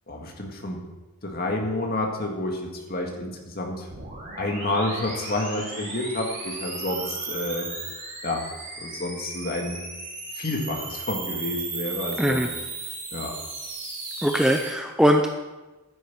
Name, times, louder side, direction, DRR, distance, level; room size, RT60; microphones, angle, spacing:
voice 1, 0.1-0.8 1.2-3.9 4.4-7.7 8.2-8.4 8.8-9.8 10.3-12.4 13.1-13.3, left 2 dB, 45° left, 1 dB, 1.9 m, -29 dB
sound 1, 3.9-14.7, right 3 dB, 40° right, 3.2 m, -35 dB
voice 2, 14.2-15.3, equal, 5° right, 4 dB, 0.5 m, -20 dB
10.0 x 9.6 x 6.0 m, 1.1 s
head